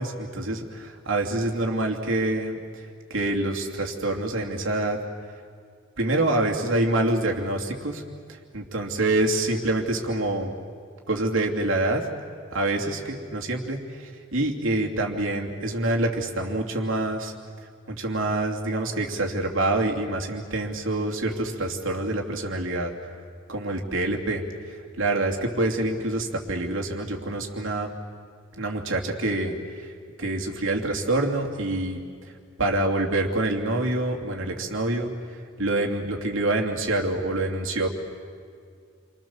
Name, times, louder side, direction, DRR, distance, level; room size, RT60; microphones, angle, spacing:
voice 1, 0.0-5.0 6.0-8.0 8.3-10.5 11.1-12.1 12.5-17.3 17.9-22.9 23.5-27.9 28.6-29.9 30.2-32.0 32.6-35.1 35.6-37.9, right 2 dB, 75° right, 1 dB, 2.9 m, -26 dB
29.5 x 25.0 x 7.2 m, 2.2 s
head